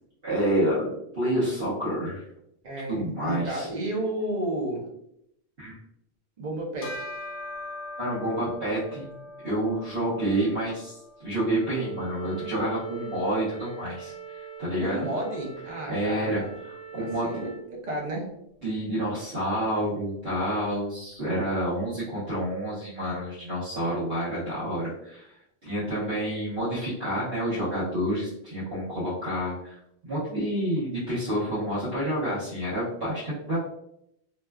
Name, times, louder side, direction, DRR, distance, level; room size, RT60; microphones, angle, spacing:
voice 1, 0.2-2.2 2.9-3.7 5.6-5.8 8.0-9.1 9.4-10.9 11.2-15.0 15.9-17.4 18.6-25.3 25.6-29.7 30.0-33.6, right 1 dB, 65° right, -11 dB, 1.2 m, -29 dB
voice 2, 2.6-4.8 6.4-7.1 14.8-16.5 17.0-18.2, right 1 dB, 50° right, -1 dB, 0.7 m, -32 dB
Bell, 6.8-16.5, left 1 dB, 45° left, 0.6 m, -44 dB
Wind instrument woodwind instrument, 11.3-17.6, right 9 dB, 80° right, 0.9 m, -41 dB
3.0 x 2.2 x 2.2 m, 0.77 s
omnidirectional pair, 1.1 m